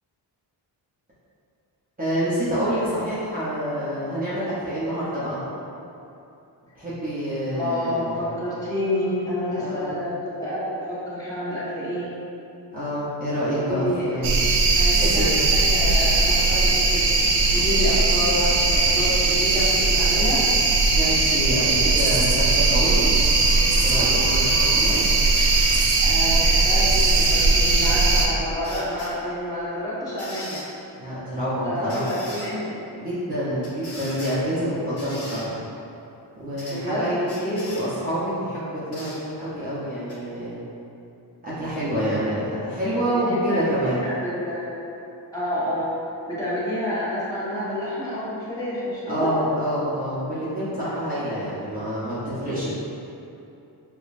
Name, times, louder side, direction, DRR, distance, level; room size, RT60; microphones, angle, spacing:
voice 1, 2.0-5.4 6.7-8.2 9.6-9.9 12.7-14.4 15.0-15.4 21.0-23.1 23.8-25.0 31.0-32.1 33.0-35.6 36.3-40.6 41.4-44.0 49.1-52.7, equal, 20° right, -12 dB, 0.9 m, -27 dB
voice 2, 7.6-10.6 10.9-12.1 13.7-14.2 14.8-17.1 17.5-20.4 26.0-30.6 31.6-32.7 36.7-37.1 43.1-44.7 45.3-45.9 46.3-49.3, left 1 dB, 10° left, -11 dB, 1.3 m, -28 dB
sound 1, 14.2-28.3, right 3 dB, 85° right, 0.6 m, -19 dB
sound 2, 25.2-25.8 27.0-27.5 28.6-29.1 30.2-30.7 31.9-32.5 33.6-34.4 35.0-35.4 36.6-36.8 37.3-37.8 38.9-39.2 40.1-40.2, left 1 dB, 35° left, 1.4 m, -38 dB
4.9 x 2.3 x 2.6 m, 2.8 s
cardioid pair, 85°, 41 cm